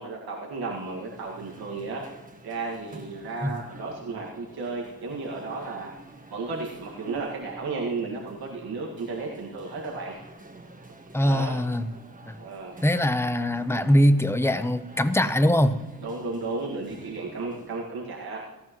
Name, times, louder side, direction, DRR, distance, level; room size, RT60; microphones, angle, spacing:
voice 1, 0.0-2.0 2.4-5.9 6.3-10.1 11.1-11.6 12.4-12.8 16.0-18.4, right 3 dB, 85° right, -2 dB, 2.0 m, -34 dB
sound 1, 0.7-18.0, right 2 dB, 20° right, 1.6 m, -48 dB
voice 2, 11.1-11.9 12.3-12.4 12.8-15.7, equal, 5° left, 11 dB, 0.8 m, -22 dB
18.0 x 13.5 x 3.1 m, 1.1 s
cardioid pair, 80°, 37 cm